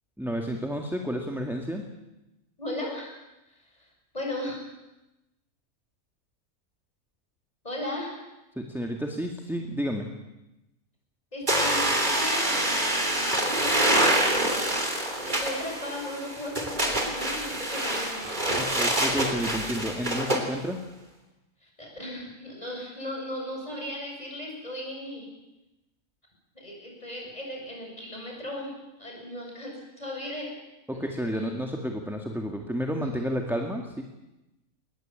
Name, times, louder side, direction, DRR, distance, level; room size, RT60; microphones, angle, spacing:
voice 1, 0.2-1.9 8.6-10.1 18.6-20.8 30.9-34.0, equal, ahead, 3 dB, 1.9 m, -31 dB
voice 2, 2.6-3.1 3.5-3.9 4.1-4.7 7.6-8.1 11.3-14.4 15.2-18.3 21.6-25.3 26.5-30.5 30.9-31.0 31.3-31.5, left 1 dB, 25° left, -1 dB, 7.5 m, -37 dB
sound 1, 11.5-20.4, right 1 dB, 35° right, 3.6 m, -26 dB
21.5 x 20.0 x 9.0 m, 0.97 s
omnidirectional pair, 1.5 m